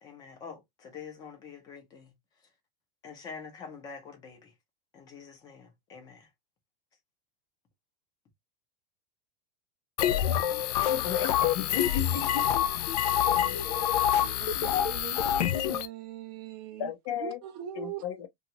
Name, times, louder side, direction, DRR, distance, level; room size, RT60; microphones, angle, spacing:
voice 1, 0.0-2.1 3.0-4.5 4.9-6.3, left 6 dB, 20° left, 0.8 m, -46 dB
sound 1, 10.0-15.9, left 10 dB, 80° left, 0.4 m, -26 dB
voice 2, 10.7-12.4 16.8-17.4 17.7-18.3, left 9 dB, 50° left, 0.7 m, -35 dB
voice 3, 13.5-16.9 17.2-18.0, right 11 dB, 35° right, 0.4 m, -42 dB
2.9 x 2.4 x 2.7 m
supercardioid pair, 175°, 20 cm